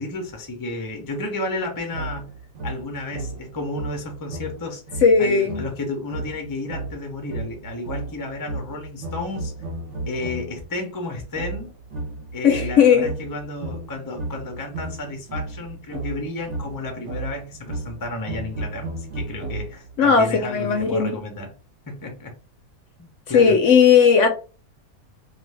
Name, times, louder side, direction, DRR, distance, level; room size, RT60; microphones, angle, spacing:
voice 1, 0.0-2.4 2.6-9.5 10.1-11.7 12.3-21.5 21.9-22.4 23.0-23.6, left 2 dB, 25° left, 3 dB, 0.4 m, -32 dB
sound 1, 1.9-10.7 11.3-20.0, right 2 dB, 60° right, 1.0 m, -34 dB
voice 2, 5.0-5.6 12.4-13.1 20.0-21.1 23.3-24.3, left 6 dB, 65° left, 4 dB, 0.8 m, -16 dB
2.6 x 2.4 x 3.3 m, 0.35 s
omnidirectional pair, 1.6 m